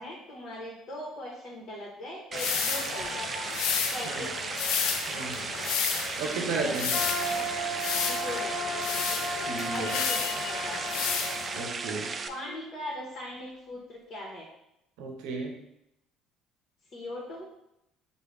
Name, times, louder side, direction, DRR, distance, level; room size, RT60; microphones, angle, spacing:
voice 1, 0.0-3.3 3.9-4.3 6.6-6.8 7.3-7.5 7.9-8.8 9.7-11.0 12.3-14.4 16.9-17.5, left 1 dB, 45° left, -4 dB, 1.2 m, -40 dB
sound 1, 2.3-11.7, left 7 dB, 75° left, 0.4 m, -32 dB
sound 2, 2.3-12.3, right 4 dB, 35° right, 0.3 m, -36 dB
voice 2, 5.1-5.5 6.2-6.9 9.4-10.0 11.6-12.1 15.0-15.5, right 4 dB, 80° right, 2 dB, 0.7 m, -34 dB
sound 3, 6.9-12.8, equal, 15° right, 1.4 m, -36 dB
4.7 x 2.3 x 3.4 m, 0.83 s
hypercardioid pair, 70°, 0 cm